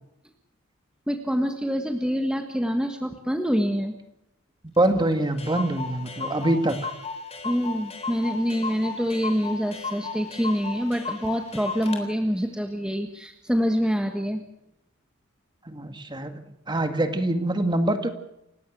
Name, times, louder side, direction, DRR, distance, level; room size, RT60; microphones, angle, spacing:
voice 1, 1.1-3.9 7.4-14.4, equal, 5° right, 4 dB, 1.5 m, -26 dB
Clock, 4.8-4.9 5.1-5.2 5.4-12.0, left 4 dB, 30° left, 3.6 m, -35 dB
voice 2, 4.8-6.9 15.6-16.4 16.7-18.1, right 1 dB, 20° right, 7 dB, 2.0 m, -24 dB
29.0 x 16.5 x 6.2 m, 0.85 s
head